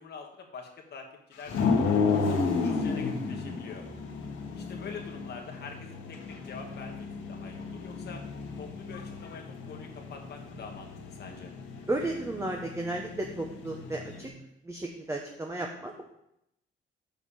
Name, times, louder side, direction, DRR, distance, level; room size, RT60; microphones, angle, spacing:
voice 1, 0.0-3.9 4.5-8.2 8.6-11.5, left 5 dB, 55° left, 1 dB, 1.5 m, -45 dB
sound 1, 1.5-14.3, left 4 dB, 85° left, 1.8 m, -33 dB
voice 2, 11.9-14.3 14.6-16.0, right 2 dB, 15° right, 1 dB, 1.2 m, -34 dB
7.1 x 5.8 x 7.3 m, 0.80 s
cardioid pair, 90°, 20 cm